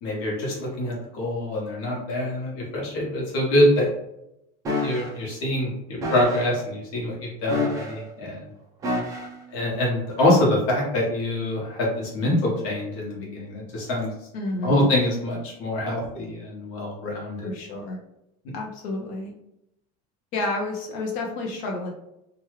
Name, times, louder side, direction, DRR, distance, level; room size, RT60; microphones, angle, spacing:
voice 1, 0.0-3.9 4.8-8.5 9.5-14.1 14.6-17.5, left 1 dB, 55° left, -2 dB, 1.2 m, -25 dB
sound 1, 4.6-5.1 6.0-6.5 7.5-8.1 8.8-9.4 10.2-10.4, left 2 dB, 15° right, 0.4 m, -28 dB
voice 2, 14.3-14.9 17.4-18.0 18.5-19.3 20.3-21.9, left 2 dB, 40° left, 0 dB, 0.7 m, -30 dB
3.0 x 2.3 x 3.1 m, 0.82 s
cardioid pair, 175°, 20 cm